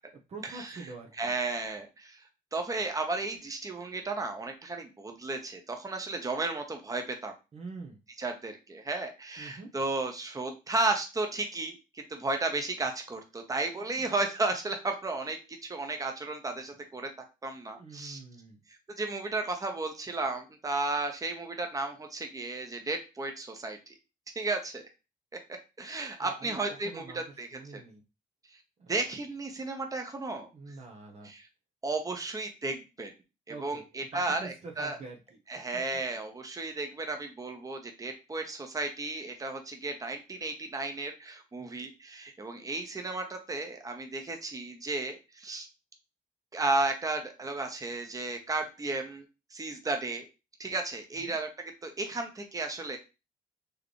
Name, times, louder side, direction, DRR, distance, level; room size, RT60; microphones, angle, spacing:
voice 1, 0.3-1.4 7.5-8.0 9.4-9.7 13.8-14.0 17.8-18.6 26.2-28.0 28.8-28.9 30.5-31.3 33.5-33.8 34.1-35.4 35.7-35.8 41.6-41.9 51.1-51.4, right 3 dB, 45° right, 2 dB, 0.9 m, -45 dB
voice 2, 1.2-2.2 2.5-7.3 8.2-17.1 17.4-18.2 19.0-23.9 24.3-24.8 25.8-27.5 27.7-27.8 28.9-30.5 31.2-31.5 31.8-33.1 33.5-35.0 35.5-45.7 46.5-49.3 49.5-50.2 50.6-51.5 51.8-53.0, right 3 dB, 25° right, 4 dB, 1.1 m, -34 dB
4.8 x 3.1 x 3.2 m, 0.28 s
cardioid pair, 90°, 15 cm